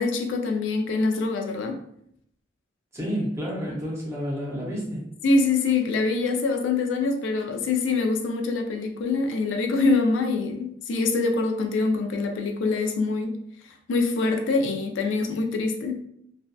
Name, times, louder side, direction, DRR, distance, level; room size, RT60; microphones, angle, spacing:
voice 1, 0.0-1.8 5.2-13.4 13.9-16.0, left 3 dB, 70° left, 3 dB, 0.4 m, -24 dB
voice 2, 2.9-5.0, equal, 15° right, -4 dB, 0.6 m, -30 dB
2.6 x 2.1 x 2.2 m, 0.72 s
head